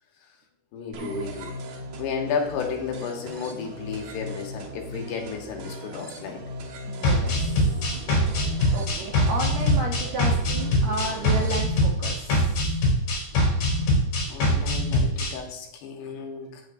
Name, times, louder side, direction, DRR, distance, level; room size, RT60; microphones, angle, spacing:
voice 1, 0.7-1.5 2.0-6.4 14.3-16.6, left 6 dB, 80° left, 2 dB, 3.5 m, -33 dB
sound 1, 0.9-11.6, equal, 65° right, 2.0 m, -38 dB
voice 2, 6.9-7.8 8.4-12.7, right 3 dB, 85° right, -1 dB, 1.6 m, -33 dB
sound 2, 7.0-15.3, left 1 dB, 60° left, 4.5 m, -23 dB
16.5 x 6.4 x 2.6 m, 0.77 s
omnidirectional pair, 4.8 m